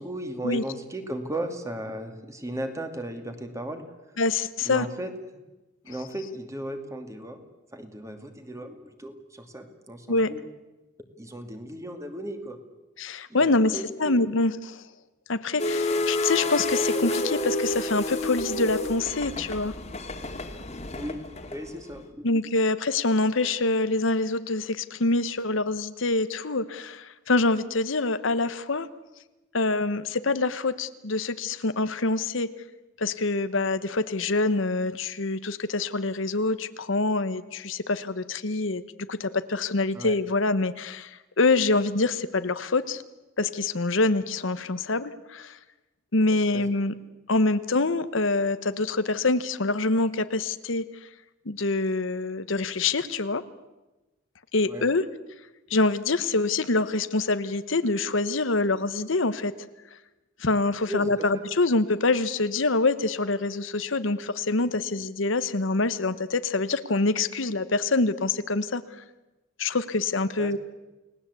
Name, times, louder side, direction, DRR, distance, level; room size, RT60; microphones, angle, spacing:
voice 1, 0.0-3.8 4.6-5.1 5.8-7.4 7.7-10.4 11.2-12.6 13.3-14.2 20.9-21.2 21.5-22.2 39.9-40.2 46.5-46.6 54.6-54.8 60.9-61.4 70.4-70.6, right 1 dB, 15° right, 6 dB, 2.5 m, -36 dB
voice 2, 4.2-4.9 10.1-10.3 13.0-14.8 15.3-19.7 22.2-28.9 29.5-32.5 33.0-38.8 39.1-43.0 43.4-45.6 46.1-46.9 47.3-50.8 51.4-53.4 54.5-55.0 55.7-59.5 60.4-69.0 69.6-70.6, left 3 dB, 70° left, 12 dB, 1.1 m, -25 dB
sound 1, 15.6-21.9, left 2 dB, 35° left, 2.2 m, -29 dB
29.5 x 19.0 x 8.3 m, 1.1 s
head